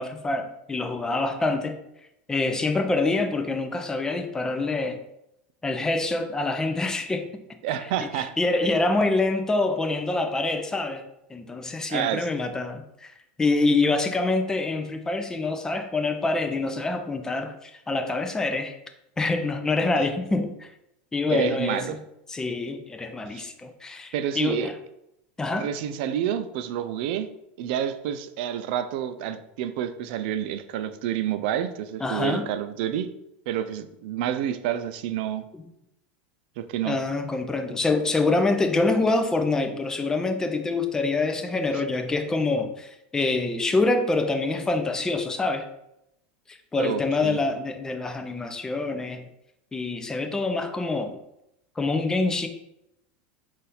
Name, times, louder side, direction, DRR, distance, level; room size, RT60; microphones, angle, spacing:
voice 1, 0.0-1.8 2.3-5.0 5.6-7.3 8.2-11.0 11.3-13.1 13.4-18.8 19.2-20.7 21.1-22.0 22.3-24.7 25.4-25.7 32.0-32.4 36.8-45.7 46.5-49.3 49.7-51.2 51.8-52.5, left 3 dB, 10° left, 6 dB, 0.4 m, -26 dB
voice 2, 7.6-8.3 11.9-12.3 20.0-20.1 21.3-22.0 23.3-23.5 24.1-24.7 25.6-27.3 27.6-33.1 33.5-35.4 36.6-37.0 46.8-47.4, right 10 dB, 65° right, 11 dB, 0.4 m, -29 dB
4.0 x 2.5 x 4.1 m, 0.84 s
supercardioid pair, 140°, 6 cm